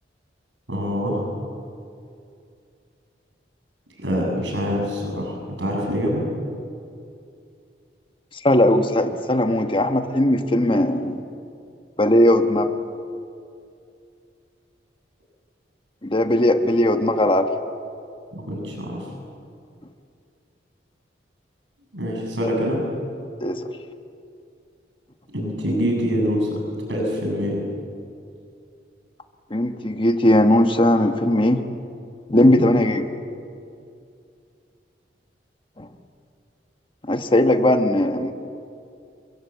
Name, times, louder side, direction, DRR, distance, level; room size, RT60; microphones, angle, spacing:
voice 1, 0.7-1.2 4.0-6.2 18.3-19.1 21.9-22.8 25.3-26.6 26.9-27.6 32.3-32.6, equal, 90° right, 0 dB, 7.4 m, -25 dB
voice 2, 8.4-11.2 12.0-12.7 16.0-17.5 23.4-23.7 29.5-31.6 32.3-33.1 35.8-35.9 37.1-38.3, left 1 dB, 30° left, 7 dB, 1.3 m, -18 dB
29.5 x 23.0 x 8.4 m, 2.5 s
head